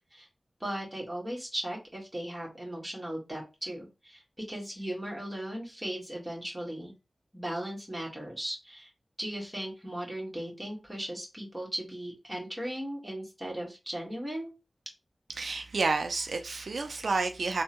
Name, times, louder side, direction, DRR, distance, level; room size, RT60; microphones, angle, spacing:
voice 1, 0.6-6.9 7.3-8.9 9.2-14.5, right 1 dB, 10° right, 1.6 m, -37 dB
voice 2, 15.4-17.6, right 3 dB, 85° right, 0.4 m, -30 dB
3.4 x 2.1 x 2.9 m
wide cardioid pair, 85°, 0 cm